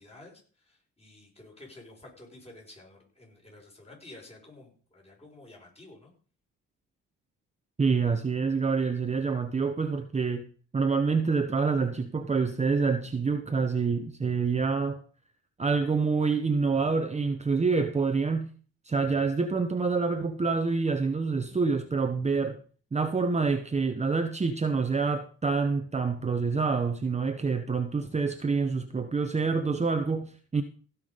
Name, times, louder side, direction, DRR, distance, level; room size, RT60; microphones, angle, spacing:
voice 1, 0.0-6.1, left 2 dB, 20° left, 0 dB, 5.5 m, -51 dB
voice 2, 7.8-10.5 10.7-15.0 15.6-18.5 18.8-22.6 22.9-30.6, right 4 dB, 20° right, 8 dB, 1.0 m, -27 dB
16.0 x 5.9 x 5.2 m, 0.41 s
cardioid pair, 90°, 30 cm